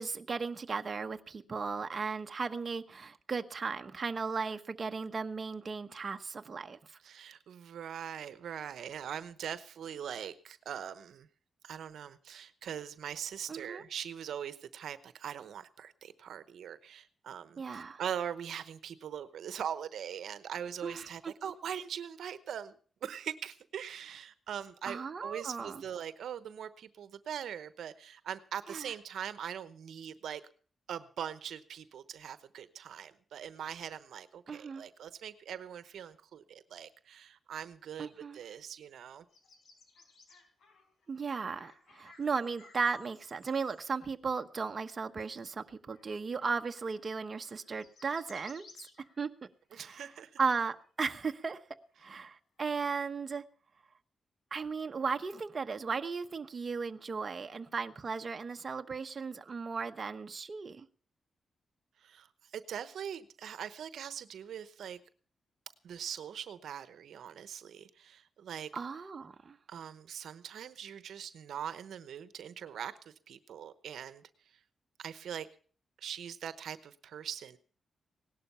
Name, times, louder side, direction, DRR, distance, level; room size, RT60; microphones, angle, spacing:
voice 1, 0.0-6.8 13.5-13.8 17.6-18.0 20.8-21.3 24.8-25.8 28.7-28.8 34.5-34.8 38.0-38.4 41.1-48.6 49.2-49.3 49.7-50.0 50.4-51.6 52.0-53.4 54.5-60.9 68.7-69.6, right 5 dB, 40° right, 1.0 m, -36 dB
voice 2, 7.0-11.3 11.6-30.4 30.9-39.2 49.7-50.4 62.0-65.0 65.8-68.7 69.7-74.6 75.0-75.5 76.0-77.6, right 9 dB, 80° right, 0.9 m, -42 dB
sound 1, 39.3-43.8 45.2-45.3 45.6-49.7 50.3-50.4 50.6-52.2, left 4 dB, 70° left, 4.3 m, -60 dB
18.0 x 12.0 x 5.6 m
cardioid pair, 95°, 0 cm